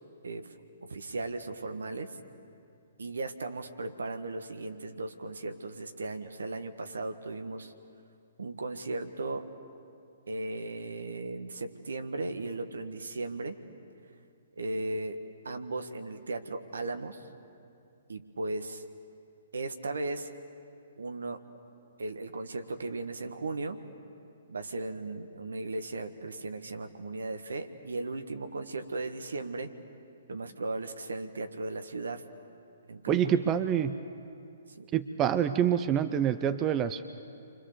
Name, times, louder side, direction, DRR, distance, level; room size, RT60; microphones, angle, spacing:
voice 1, 0.2-0.6 0.9-2.2 3.0-7.7 8.4-9.5 10.3-13.6 14.6-15.2 15.4-17.2 18.1-18.8 19.5-20.3 21.0-21.4 22.0-23.8 24.5-29.7 30.3-32.2 32.9-33.4 34.8-34.9, right 2 dB, 75° right, 8 dB, 1.7 m, -36 dB
voice 2, 33.1-34.0 34.9-37.0, right 9 dB, 25° right, 11 dB, 0.8 m, -26 dB
29.5 x 25.0 x 7.0 m, 2.5 s
figure-of-eight pair, 125°, 0 cm